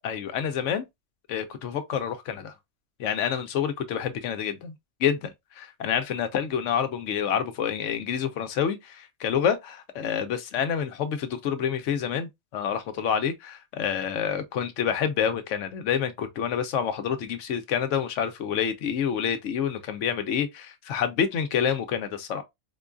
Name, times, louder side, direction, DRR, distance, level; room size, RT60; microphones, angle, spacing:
voice 1, 0.0-0.9 1.3-2.5 3.0-4.7 5.0-22.4, left 8 dB, 75° left, 1.0 m, -28 dB
4.4 x 2.3 x 2.4 m
omnidirectional pair, 1.3 m